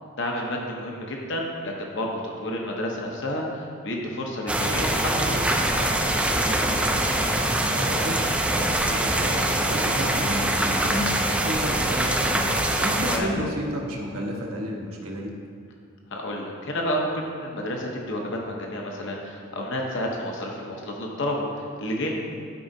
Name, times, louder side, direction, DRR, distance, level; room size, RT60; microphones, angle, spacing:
voice 1, 0.2-5.9 13.1-13.3 16.1-22.1, left 1 dB, 55° left, 0 dB, 0.9 m, -30 dB
sound 1, 4.5-13.2, right 1 dB, 5° right, 0.4 m, -24 dB
voice 2, 7.1-15.3, equal, 80° right, -1 dB, 1.2 m, -32 dB
12.0 x 4.9 x 2.7 m, 2.2 s
head